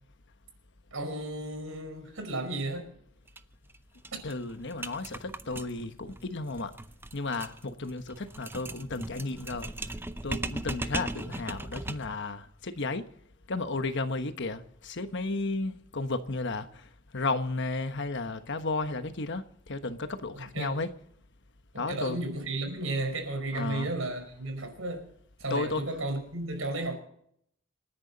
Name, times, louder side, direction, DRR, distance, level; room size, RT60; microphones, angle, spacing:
voice 1, 0.9-2.9 4.1-4.2 20.3-20.7 21.7-25.0 25.4-26.9, right 2 dB, 85° right, 5.1 m, -33 dB
sound 1, 3.3-3.4 3.7-3.8 4.0-12.2, right 2 dB, 10° right, 0.6 m, -38 dB
voice 2, 4.2-6.7 7.1-9.7 10.2-13.0 13.5-16.7 17.1-20.9 21.8-22.2 23.5-23.9 25.5-25.8, left 3 dB, 60° left, 1.2 m, -33 dB
27.5 x 10.5 x 4.1 m
head